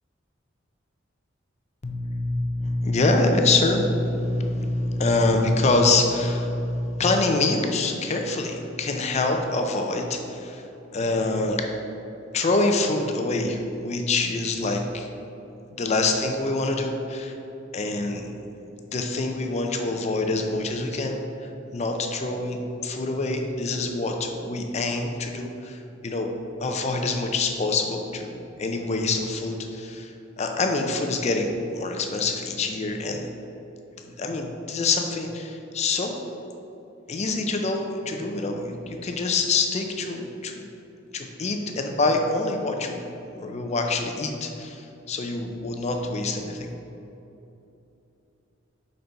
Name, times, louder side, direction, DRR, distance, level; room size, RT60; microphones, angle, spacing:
voice 1, 1.8-10.6 10.9-11.6 12.3-15.1 15.7-17.3 17.7-18.3 18.9-21.2 21.7-26.3 26.6-33.2 34.0-36.2 37.1-40.7 41.1-43.1 43.4-46.7, left 2 dB, 35° left, 3 dB, 0.5 m, -25 dB
5.2 x 4.0 x 4.5 m, 2.9 s
head